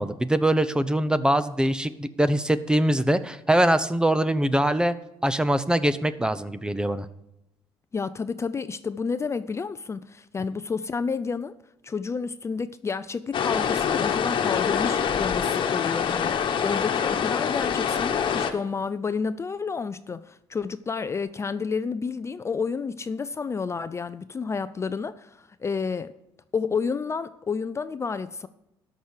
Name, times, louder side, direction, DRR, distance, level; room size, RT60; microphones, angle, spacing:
voice 1, 0.0-4.9 5.2-7.0, right 1 dB, 10° right, 0.7 m, -23 dB
voice 2, 7.9-11.5 11.8-26.1 26.5-28.5, left 5 dB, 30° left, 0.5 m, -30 dB
sound 1, 13.3-18.5, left 7 dB, 55° left, 1.3 m, -25 dB
13.0 x 6.1 x 6.5 m
cardioid pair, 90°, 10 cm